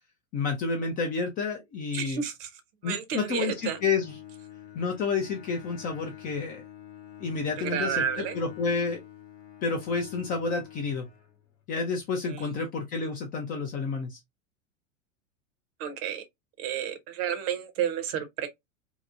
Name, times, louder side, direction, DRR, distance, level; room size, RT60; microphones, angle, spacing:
voice 1, 0.3-2.2 2.8-4.2 4.7-6.6 7.2-9.0 9.6-11.1 11.7-14.2, left 4 dB, 25° left, 0.3 m, -30 dB
voice 2, 1.9-2.5 2.8-3.8 7.6-8.4 12.3-12.4 15.8-16.2 16.6-18.5, right 8 dB, 45° right, 0.7 m, -31 dB
Bowed string instrument, 3.5-11.7, left 11 dB, 50° left, 0.9 m, -47 dB
2.8 x 2.0 x 2.3 m
hypercardioid pair, 115°, 40 cm